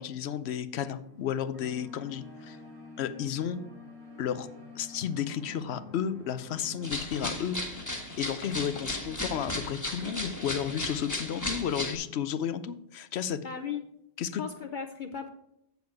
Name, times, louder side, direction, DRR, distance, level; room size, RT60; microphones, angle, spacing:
voice 1, 0.0-2.6 3.0-3.6 4.2-4.5 4.7-7.9 8.2-13.4 14.2-14.4, left 8 dB, 85° left, 13 dB, 0.9 m, -33 dB
sound 1, 1.0-9.4, left 2 dB, 80° right, 2.7 m, -49 dB
sound 2, 6.8-12.0, left 1 dB, 15° left, 1.3 m, -35 dB
voice 2, 13.4-13.9 14.4-15.3, left 7 dB, 55° left, 6 dB, 0.7 m, -36 dB
7.9 x 7.0 x 4.7 m, 0.80 s
omnidirectional pair, 1.1 m